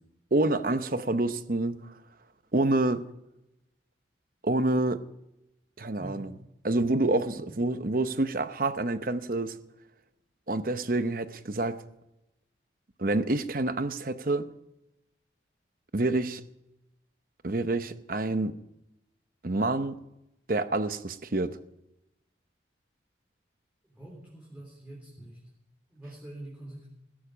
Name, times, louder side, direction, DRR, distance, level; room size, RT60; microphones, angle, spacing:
voice 1, 0.3-1.8 2.5-3.0 4.4-5.0 5.8-6.3 6.6-9.5 10.5-11.8 13.0-14.4 15.9-16.4 17.4-18.6 19.4-19.9 20.5-21.6, right 2 dB, 50° right, 11 dB, 0.9 m, -27 dB
voice 2, 6.0-6.3 7.4-7.5 23.8-25.4 25.9-26.9, right 1 dB, 10° right, -4 dB, 3.7 m, -45 dB
16.5 x 14.0 x 5.1 m, 0.87 s
head